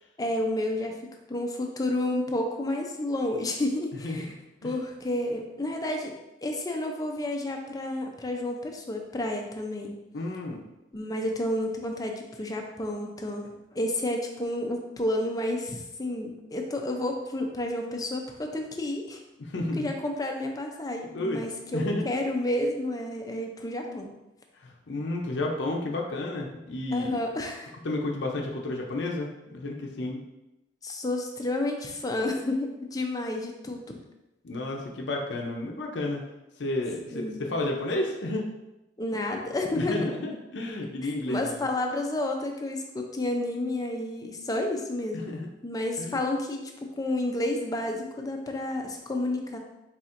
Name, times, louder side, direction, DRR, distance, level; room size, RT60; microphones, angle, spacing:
voice 1, 0.2-0.9 1.3-4.3 4.6-6.1 6.4-10.0 10.9-19.2 19.8-24.1 26.9-27.7 30.8-34.0 37.1-37.4 39.0-40.1 41.0-45.3 45.6-49.6, left 1 dB, 20° left, 2 dB, 0.5 m, -30 dB
voice 2, 10.1-10.6 19.4-20.0 21.1-21.4 21.7-22.0 24.6-27.2 27.8-30.2 34.4-36.2 36.6-38.5 39.8-41.7 45.3-45.5 46.0-46.2, left 2 dB, 70° left, 0 dB, 0.6 m, -31 dB
4.3 x 4.1 x 2.5 m, 0.95 s
head